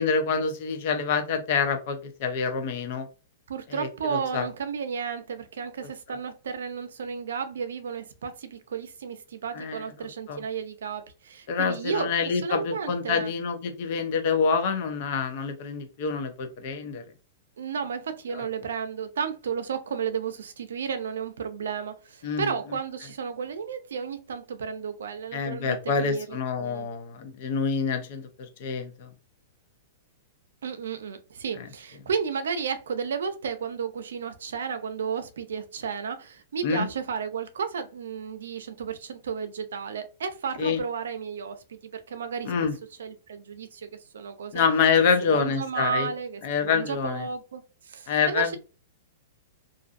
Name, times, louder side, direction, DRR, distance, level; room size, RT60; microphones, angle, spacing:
voice 1, 0.0-3.1 3.7-4.5 9.5-9.9 10.3-10.4 11.5-17.0 18.3-18.4 22.2-22.5 25.3-29.1 31.6-31.7 36.6-36.9 40.6-40.8 42.4-42.7 44.5-46.1 46.4-47.3 48.1-48.6, left 5 dB, 50° left, 0.7 m, -26 dB
voice 2, 3.5-13.3 17.6-26.9 30.6-42.5 43.0-44.6 45.2-48.6, right 6 dB, 90° right, 0.5 m, -33 dB
2.6 x 2.4 x 2.5 m
hypercardioid pair, 150°, 0 cm